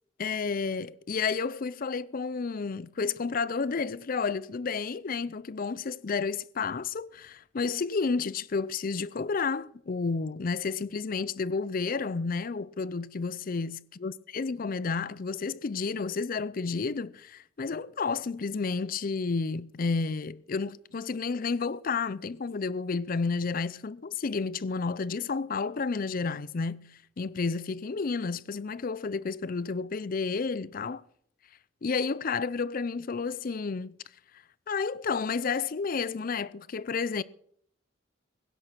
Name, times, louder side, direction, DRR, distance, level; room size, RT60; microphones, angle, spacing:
voice 1, 0.2-31.0 31.8-33.9 34.7-37.2, left 4 dB, 45° left, 0.5 m, -31 dB
16.5 x 11.0 x 6.0 m
head